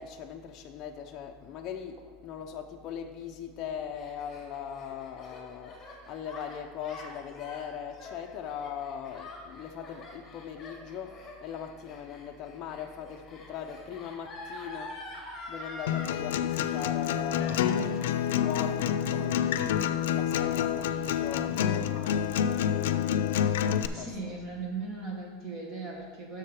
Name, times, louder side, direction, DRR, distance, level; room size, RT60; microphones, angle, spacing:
voice 1, 0.0-22.3 24.0-24.5, left 8 dB, 30° left, 2 dB, 0.5 m, -40 dB
Gasp, 3.6-16.1 16.5-17.1 17.3-18.0, left 2 dB, 15° left, 1.8 m, -46 dB
Acoustic guitar, 15.9-23.9, left 9 dB, 90° left, 0.4 m, -28 dB
voice 2, 23.9-26.4, right 4 dB, 30° right, -1 dB, 1.3 m, -38 dB
7.6 x 6.5 x 4.8 m, 1.5 s
supercardioid pair, 175°, 0 cm